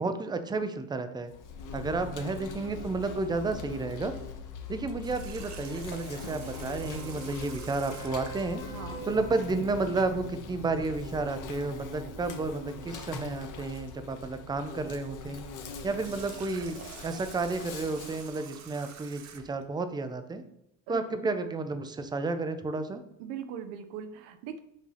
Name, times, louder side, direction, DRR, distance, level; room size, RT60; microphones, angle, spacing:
voice 1, 0.0-1.3 1.7-4.1 4.7-8.6 9.0-15.4 15.8-16.8 17.0-20.4 20.9-23.0, right 3 dB, 10° right, 8 dB, 0.4 m, -31 dB
Insect, 1.3-18.3, left 4 dB, 50° left, 1.0 m, -42 dB
sound 1, 4.6-10.3 14.4-14.5, right 2 dB, 10° left, 0.9 m, -49 dB
Water tap faucet, 5.0-8.4 15.8-19.6, right 7 dB, 45° right, 0.7 m, -47 dB
voice 2, 8.7-9.0 20.9-21.0 23.2-24.6, right 8 dB, 85° right, 8 dB, 0.7 m, -40 dB
6.1 x 2.8 x 5.6 m, 0.78 s
cardioid pair, 125°, 39 cm